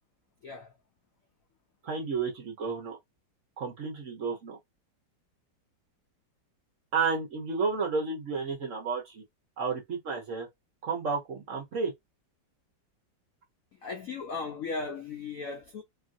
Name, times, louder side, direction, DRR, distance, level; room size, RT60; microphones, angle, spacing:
voice 1, 0.4-0.7 13.8-15.8, left 4 dB, 75° left, 0.7 m, -36 dB
voice 2, 1.8-3.0 3.6-4.6 6.9-9.2 9.6-10.5 10.8-11.9, right 4 dB, 55° right, 1.0 m, -31 dB
3.1 x 2.4 x 2.5 m
omnidirectional pair, 2.0 m